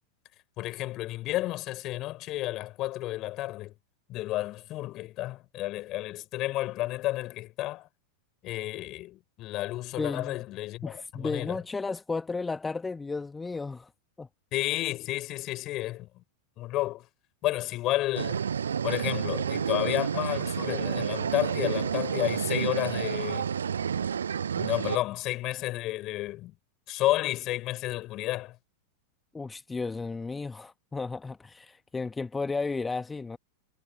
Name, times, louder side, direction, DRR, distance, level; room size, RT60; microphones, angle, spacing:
voice 1, 0.6-3.7 4.1-7.9 8.4-11.6 14.5-16.2 16.6-17.0 17.4-18.4 18.8-23.5 24.5-26.5 26.9-28.6, left 16 dB, 35° left, 6.2 m, -31 dB
voice 2, 10.0-10.4 10.8-13.9 14.2-14.3 29.3-33.4, left 4 dB, 10° left, 1.4 m, -33 dB
sound 1, 18.2-25.0, right 7 dB, 70° right, 0.7 m, -30 dB
figure-of-eight pair, 90°, 0 cm